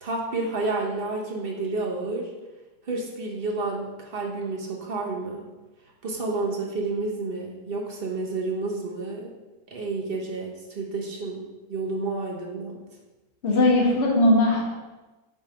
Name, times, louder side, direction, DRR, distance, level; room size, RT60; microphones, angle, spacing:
voice 1, 0.0-2.3 2.8-5.5 6.0-9.3 9.7-12.8, right 3 dB, 40° right, -1 dB, 0.9 m, -30 dB
voice 2, 13.4-14.7, left 1 dB, 45° left, -3 dB, 1.3 m, -19 dB
5.6 x 3.4 x 5.2 m, 1.1 s
omnidirectional pair, 1.8 m